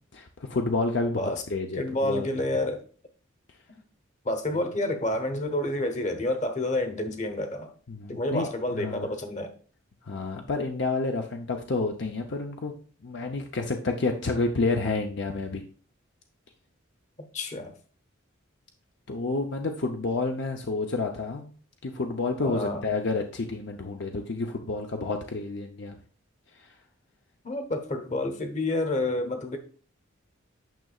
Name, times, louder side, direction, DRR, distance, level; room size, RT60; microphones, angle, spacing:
voice 1, 0.1-2.3 7.9-8.5 8.8-9.1 10.0-12.7 13.0-15.6 19.1-21.5 21.8-26.0 26.6-26.8, left 3 dB, 60° left, 0.6 m, -29 dB
voice 2, 1.7-2.8 4.2-7.7 8.1-9.5 17.2-17.7 22.4-22.8 27.4-29.6, left 1 dB, 35° left, 1.0 m, -29 dB
9.2 x 6.1 x 2.4 m
head